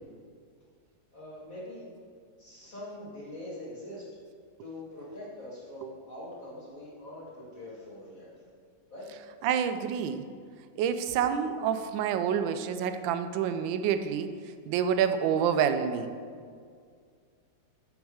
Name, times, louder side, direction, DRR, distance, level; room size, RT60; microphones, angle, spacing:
voice 1, 1.1-1.9 2.4-4.0 4.6-8.3 8.9-9.1, left 1 dB, 45° left, -7 dB, 2.2 m, -43 dB
voice 2, 9.4-10.2 10.8-14.3 14.7-16.1, right 8 dB, 75° right, 10 dB, 1.2 m, -28 dB
6.9 x 6.4 x 4.8 m, 2.1 s
omnidirectional pair, 2.2 m